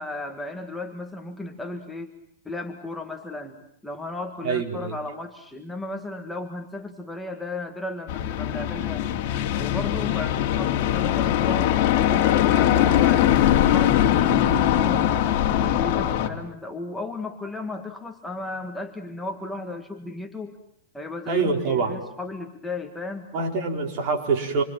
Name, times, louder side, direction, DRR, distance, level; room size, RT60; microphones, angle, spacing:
voice 1, 0.0-2.1 2.5-9.1 9.6-15.1 15.5-20.6 20.9-23.3, left 2 dB, 5° left, 3 dB, 1.8 m, -35 dB
voice 2, 4.4-5.0 21.3-22.0 23.3-24.6, right 4 dB, 40° right, 2 dB, 4.6 m, -25 dB
sound 1, 8.1-16.3, left 11 dB, 45° left, 2.9 m, -21 dB
27.5 x 25.0 x 7.5 m, 0.71 s
supercardioid pair, 145°, 0 cm